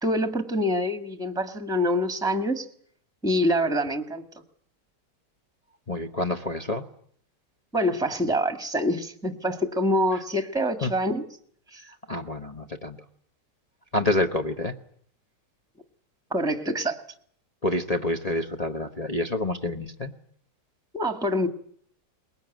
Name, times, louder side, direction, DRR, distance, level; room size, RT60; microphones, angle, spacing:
voice 1, 0.0-2.6 3.2-4.2 7.7-11.2 11.7-11.8 16.3-17.0 20.9-21.5, equal, ahead, 9 dB, 1.5 m, -25 dB
voice 2, 5.9-6.9 10.1-10.2 10.8-10.9 11.8-13.0 13.9-14.7 17.6-20.1, left 2 dB, 25° left, 3 dB, 1.0 m, -28 dB
22.5 x 20.5 x 9.2 m, 0.62 s
omnidirectional pair, 1.9 m